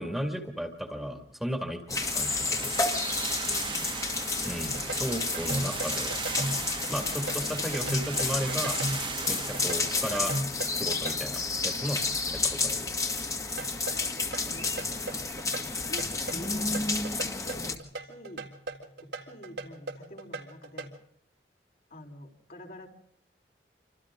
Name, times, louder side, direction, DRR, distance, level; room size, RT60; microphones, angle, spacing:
voice 1, 0.0-2.8 4.4-6.2 6.9-8.8 9.3-10.3 10.7-12.0 12.4-12.9, equal, ahead, 4 dB, 2.3 m, -34 dB
sound 1, 1.9-17.8, left 3 dB, 20° left, 2.1 m, -31 dB
sound 2, 2.0-10.4, right 6 dB, 30° right, 1.6 m, -38 dB
sound 3, 4.4-11.2 13.6-21.0, right 1 dB, 80° right, 3.5 m, -37 dB
voice 2, 14.5-18.5 19.0-20.9 21.9-22.9, equal, 55° left, 2 dB, 4.3 m, -48 dB
28.0 x 26.0 x 3.8 m, 0.69 s
head